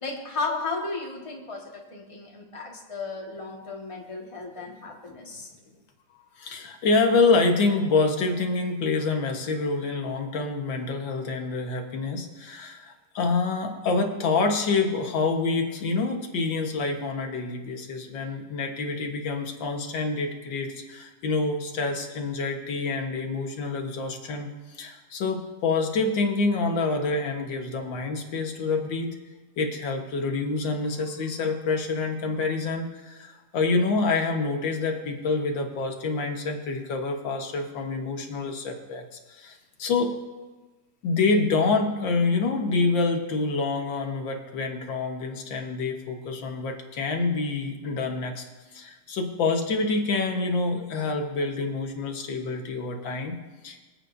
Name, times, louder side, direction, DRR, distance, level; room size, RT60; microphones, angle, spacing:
voice 1, 0.0-5.5, left 3 dB, 20° left, -1 dB, 1.5 m, -34 dB
voice 2, 6.4-29.2 29.6-40.1 41.0-48.4 48.7-53.8, left 3 dB, 90° left, 3 dB, 2.0 m, -27 dB
25.0 x 8.4 x 2.6 m, 1.2 s
omnidirectional pair, 2.0 m